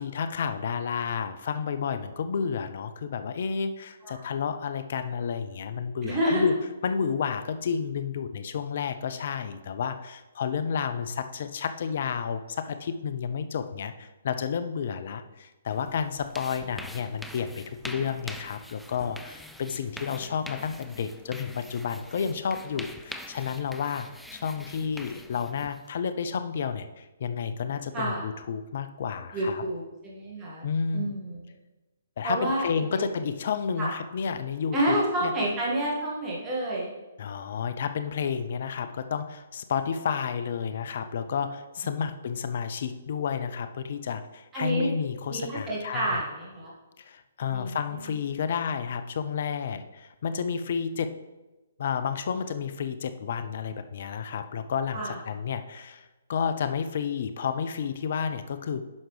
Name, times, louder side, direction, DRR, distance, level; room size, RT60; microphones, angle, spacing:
voice 1, 0.0-6.5 6.8-24.1 24.3-29.6 30.6-31.1 32.2-35.0 35.2-35.3 37.2-46.2 47.0-51.1 51.8-58.8, left 6 dB, 55° left, 10 dB, 0.5 m, -31 dB
voice 2, 6.0-6.4 27.9-28.2 29.3-31.4 32.2-32.7 32.9-33.0 33.8-33.9 34.7-36.9 44.5-44.9 45.3-46.7 47.5-47.8 54.9-55.2, right 1 dB, 20° right, -6 dB, 1.9 m, -29 dB
sound 1, 15.7-25.9, left 1 dB, ahead, 0.4 m, -44 dB
9.6 x 5.8 x 3.3 m, 1.1 s
figure-of-eight pair, 130°, 0 cm